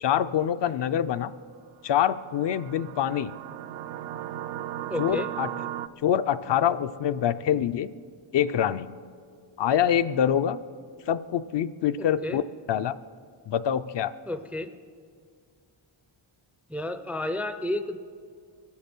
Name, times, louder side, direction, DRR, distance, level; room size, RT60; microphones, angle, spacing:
voice 1, 0.0-1.3 1.8-3.3 5.0-5.5 6.0-7.9 8.3-8.9 9.6-10.6 11.1-12.4 12.7-12.9 13.5-14.1, left 10 dB, 60° left, 12 dB, 0.5 m, -25 dB
sound 1, 1.9-5.9, right 12 dB, 75° right, 0.5 m, -36 dB
voice 2, 4.9-5.3 12.0-12.4 14.3-14.7 16.7-18.0, left 1 dB, 5° right, 8 dB, 0.3 m, -31 dB
24.0 x 8.7 x 6.0 m, 2.1 s
wide cardioid pair, 165°, 49 cm